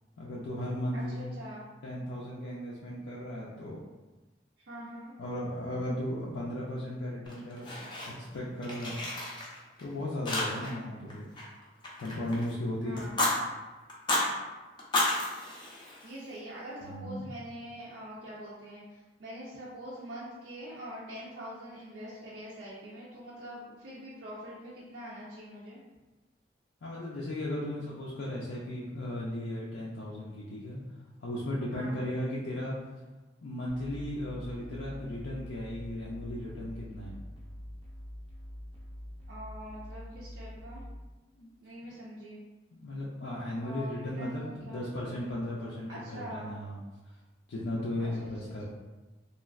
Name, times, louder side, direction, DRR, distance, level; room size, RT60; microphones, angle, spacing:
voice 1, 0.2-1.3 1.8-3.8 5.2-7.7 8.1-9.0 9.8-11.3 12.0-13.1 16.8-17.3 26.8-30.8 31.2-32.8 33.4-37.2 41.4-41.5 42.7-46.8 47.5-48.6, left 1 dB, 85° left, -6 dB, 0.4 m, -36 dB
voice 2, 0.9-1.6 4.6-5.1 12.8-13.2 16.0-25.8 31.7-32.0 39.3-40.8 41.6-42.4 43.6-44.8 45.9-46.5 48.0-48.6, equal, 80° right, -8 dB, 0.6 m, -44 dB
Fire, 7.3-8.4 8.6-9.8 10.3-10.8 11.1-12.5 13.0-13.3 13.9-14.3 14.8-16.4, left 1 dB, 25° left, 0.5 m, -32 dB
sound 1, 33.7-41.0, equal, 30° right, 0.5 m, -45 dB
3.1 x 2.4 x 2.3 m, 1.2 s
head